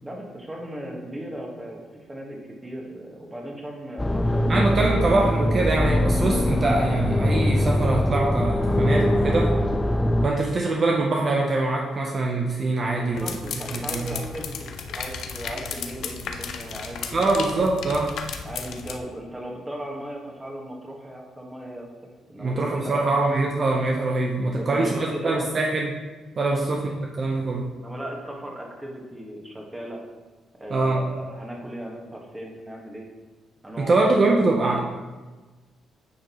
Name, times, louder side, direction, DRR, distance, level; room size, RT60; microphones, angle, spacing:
voice 1, 0.0-5.0 13.0-17.4 18.4-23.1 24.5-25.4 26.5-26.7 27.7-30.0 30.6-33.1 33.6-34.3, right 1 dB, 15° right, -1 dB, 1.5 m, -37 dB
sound 1, 4.0-10.3, left 1 dB, 15° left, 0.3 m, -22 dB
voice 2, 4.5-9.6 10.2-13.4 13.7-14.2 17.1-18.2 22.4-26.0 26.4-27.8 30.7-31.0 33.8-34.8, right 2 dB, 45° right, 0 dB, 0.7 m, -23 dB
sound 2, 13.1-19.0, left 6 dB, 75° left, 0.6 m, -34 dB
9.6 x 5.1 x 3.0 m, 1.3 s
cardioid pair, 90°, 0 cm